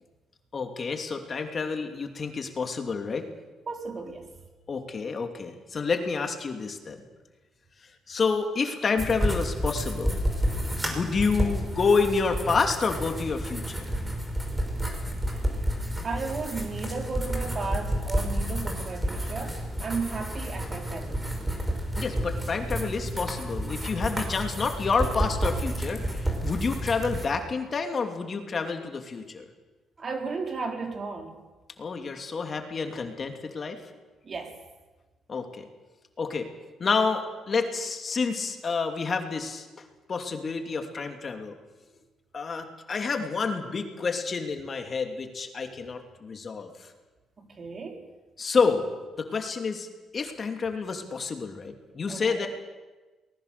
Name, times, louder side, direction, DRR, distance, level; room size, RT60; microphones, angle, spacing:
voice 1, 0.5-3.3 4.7-7.0 7.8-10.2 10.9-13.9 22.0-29.5 31.8-33.8 35.3-35.7 36.2-36.5 36.8-39.7 40.1-41.5 42.3-46.9 48.4-48.9 49.2-49.9 50.1-52.5, left 4 dB, 40° left, 5 dB, 2.7 m, -29 dB
voice 2, 3.7-4.3 16.0-21.3 30.0-31.4 34.2-34.6 47.4-48.0 52.1-52.5, right 4 dB, 40° right, 3 dB, 3.7 m, -34 dB
sound 1, 9.0-27.2, equal, 10° right, 5.5 m, -30 dB
23.5 x 20.0 x 6.8 m, 1.2 s
cardioid pair, 90°, 0 cm